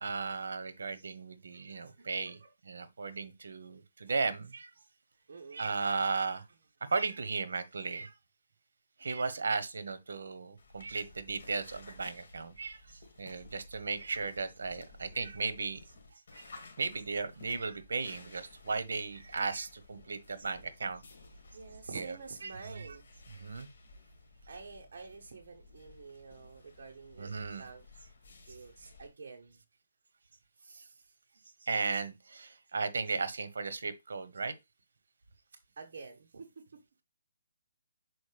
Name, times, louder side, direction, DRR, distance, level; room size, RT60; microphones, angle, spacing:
voice 1, 0.0-4.7 5.5-6.4 6.9-8.1 9.0-15.8 16.1-16.5 16.8-21.0 21.9-22.2 22.4-23.0 23.3-23.7 27.2-27.7 30.7-30.9 31.6-34.5, right 4 dB, 75° right, 1.0 m, -36 dB
voice 2, 5.3-5.6 21.5-23.1 24.5-27.3 27.6-27.8 28.5-29.6 35.8-36.6, right 4 dB, 55° right, 1.0 m, -48 dB
sound 1, 10.6-29.1, left 2 dB, 55° left, 2.0 m, -55 dB
6.2 x 4.7 x 3.3 m
hypercardioid pair, 170°, 0 cm